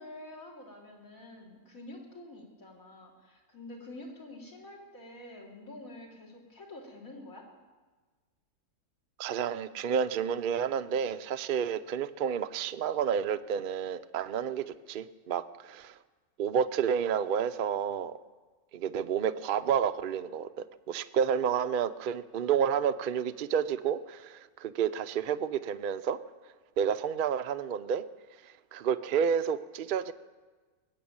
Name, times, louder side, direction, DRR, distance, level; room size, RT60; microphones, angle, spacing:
voice 1, 0.0-7.4, left 1 dB, 60° left, -1 dB, 3.3 m, -47 dB
voice 2, 9.2-15.9 16.4-18.2 18.7-26.2 26.8-28.0 28.7-30.1, right 8 dB, 65° right, 11 dB, 0.5 m, -30 dB
21.0 x 7.8 x 8.7 m, 1.3 s
omnidirectional pair, 1.7 m